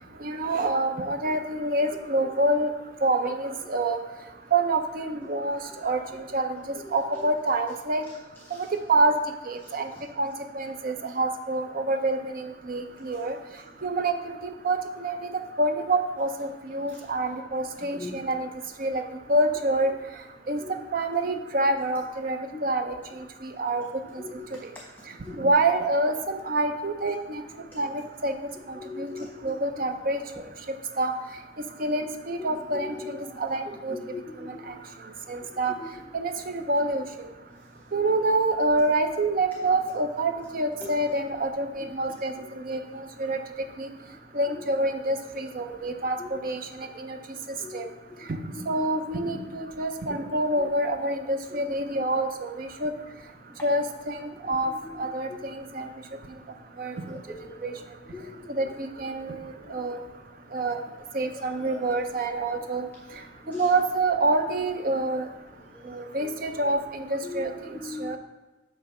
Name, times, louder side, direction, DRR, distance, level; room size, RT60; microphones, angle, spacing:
voice 1, 0.2-2.7 3.0-4.0 4.5-8.0 8.9-9.1 9.5-9.9 10.2-13.3 13.8-14.2 14.4-15.3 15.6-18.5 18.8-19.0 19.3-19.9 20.5-20.6 20.9-23.8 25.3-27.4 27.7-28.3 28.7-29.1 29.4-30.2 31.0-31.1 31.8-34.0 34.4-34.7 35.3-35.8 36.1-37.0 37.9-43.4 43.8-43.9 44.3-47.2 47.7-47.9 48.3-52.9 53.6-54.7 55.0-55.9 56.8-57.2 57.6-57.7 58.5-60.0 60.5-60.8 61.1-62.9 63.6-65.3 65.9-68.2, right 2 dB, 50° right, 7 dB, 0.6 m, -27 dB
voice 2, 24.2-24.6 25.2-25.4 28.8-29.8 32.4-33.4 33.9-34.8 35.5-35.9 40.8-40.9 44.5-44.6 46.2-46.4 47.6-47.8 48.1-48.3 50.6-50.7 51.5-51.6 54.7-55.4 57.3-57.8 58.1-58.5 59.6-59.9 61.7-61.8 63.4-63.7 65.7-65.9 66.2-66.4 67.2-67.5 67.8-68.2, left 3 dB, 10° left, -1 dB, 0.5 m, -40 dB
8.8 x 3.3 x 5.9 m, 1.1 s
head